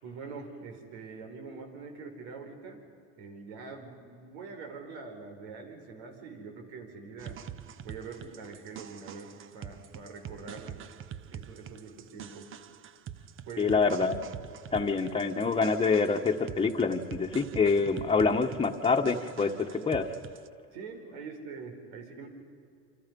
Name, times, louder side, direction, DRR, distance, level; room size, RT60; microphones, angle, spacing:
voice 1, 0.0-2.9 3.2-7.4 7.8-10.8 11.3-12.5 13.5-13.8 20.7-22.3, right 4 dB, 80° right, 4 dB, 5.4 m, -44 dB
sound 1, 7.2-20.5, right 9 dB, 35° right, 0.9 m, -45 dB
voice 2, 13.6-14.2 14.7-20.1, left 4 dB, 15° left, 3 dB, 1.6 m, -26 dB
29.0 x 26.5 x 5.5 m, 2.4 s
supercardioid pair, 125°, 34 cm